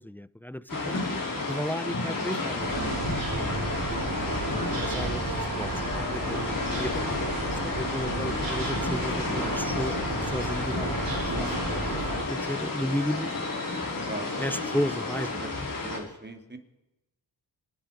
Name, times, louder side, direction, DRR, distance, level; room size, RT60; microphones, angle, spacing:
voice 1, 0.0-2.8 4.7-10.0 10.2-13.3 14.4-15.5, equal, 5° left, 17 dB, 0.5 m, -34 dB
sound 1, 0.7-16.0, left 3 dB, 50° left, 5.0 m, -31 dB
sound 2, 2.6-12.2, right 2 dB, 50° right, 5.3 m, -33 dB
voice 2, 3.4-4.4 14.1-14.3 15.4-15.5 15.8-16.6, right 2 dB, 25° right, 6 dB, 2.5 m, -42 dB
24.5 x 10.0 x 5.1 m, 0.95 s
cardioid pair, 65°, 44 cm